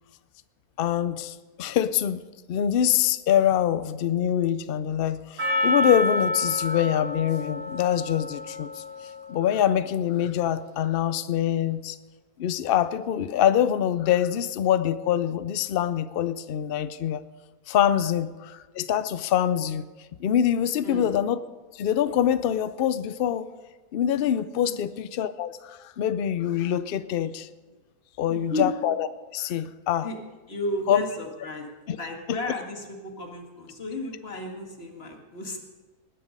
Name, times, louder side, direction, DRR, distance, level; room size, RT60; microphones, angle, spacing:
voice 1, 0.8-2.2 2.5-8.8 9.3-12.0 12.4-17.2 17.7-19.8 20.2-21.4 21.7-23.5 23.9-27.5 28.2-29.1 29.3-30.1 30.9-31.0 31.9-32.0 32.3-32.4, left 10 dB, 85° left, 0.5 m, -24 dB
Percussion, 5.4-9.7, left 1 dB, 70° right, 6.1 m, -29 dB
voice 2, 28.3-28.7 30.0-30.2 30.5-31.7 32.0-35.6, left 1 dB, 40° left, 2.1 m, -33 dB
19.0 x 10.0 x 5.2 m
omnidirectional pair, 1.6 m